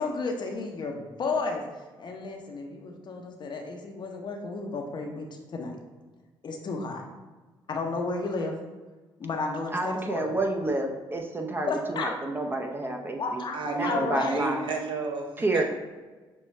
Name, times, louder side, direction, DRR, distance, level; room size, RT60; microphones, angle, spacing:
voice 1, 0.0-1.6 2.0-5.7 6.4-7.0 7.7-8.5 9.2-10.3 11.6-12.1 13.2-14.4, left 3 dB, 50° left, 2 dB, 0.7 m, -32 dB
voice 2, 9.7-13.4 13.7-14.6 15.4-15.6, right 2 dB, 25° right, 2 dB, 0.7 m, -29 dB
voice 3, 13.5-15.6, right 3 dB, 60° right, 2 dB, 0.7 m, -31 dB
6.3 x 2.2 x 3.2 m, 1.3 s
cardioid pair, 75°, 10 cm